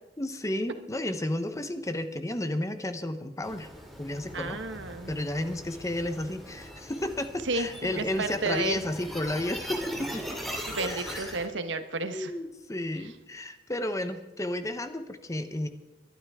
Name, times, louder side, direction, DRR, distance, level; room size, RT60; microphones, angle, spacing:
voice 1, 0.2-3.7 4.0-4.6 5.1-10.3 10.8-11.3 12.1-15.7, left 1 dB, 15° left, 9 dB, 1.0 m, -32 dB
sound 1, 3.4-11.5, equal, ahead, 2.5 m, -40 dB
voice 2, 4.3-5.2 7.4-8.8 10.7-12.3 13.0-13.1, right 3 dB, 85° right, 8 dB, 1.3 m, -32 dB
22.0 x 12.0 x 3.7 m, 1.1 s
head